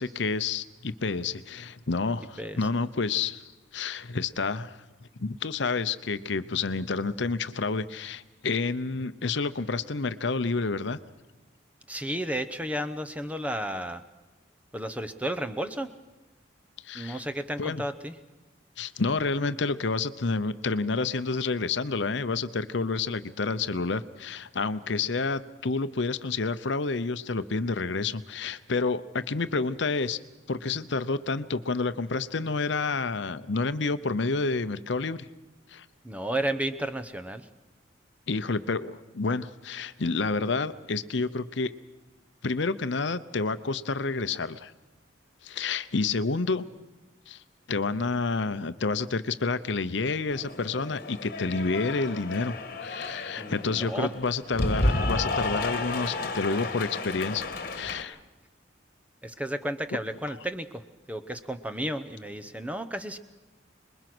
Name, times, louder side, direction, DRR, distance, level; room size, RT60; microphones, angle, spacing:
voice 1, 0.0-4.8 5.2-11.0 16.8-17.2 17.6-17.8 18.8-30.2 30.5-35.2 35.7-35.9 38.3-41.7 42.4-44.7 45.4-46.6 47.3-47.4 47.7-52.5 52.8-58.2, left 4 dB, 65° left, 13 dB, 0.8 m, -29 dB
voice 2, 11.9-14.0 14.7-15.9 16.9-18.1 36.0-37.5 53.4-54.1 59.2-60.8 61.1-63.2, right 1 dB, 5° right, 10 dB, 0.9 m, -32 dB
Cheering / Applause, 50.3-58.0, left 2 dB, 45° left, 1.7 m, -31 dB
26.5 x 21.5 x 6.1 m, 1.1 s
head